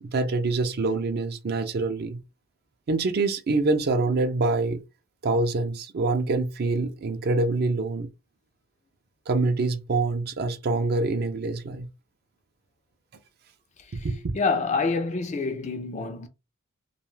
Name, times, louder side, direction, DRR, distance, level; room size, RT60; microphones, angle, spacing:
voice 1, 0.0-2.2 2.9-4.8 5.2-8.1 9.3-11.9 13.9-14.3, right 3 dB, 45° right, 0.4 m, -25 dB
voice 2, 14.3-16.3, left 4 dB, 30° left, 0.4 m, -27 dB
2.3 x 2.3 x 3.1 m
head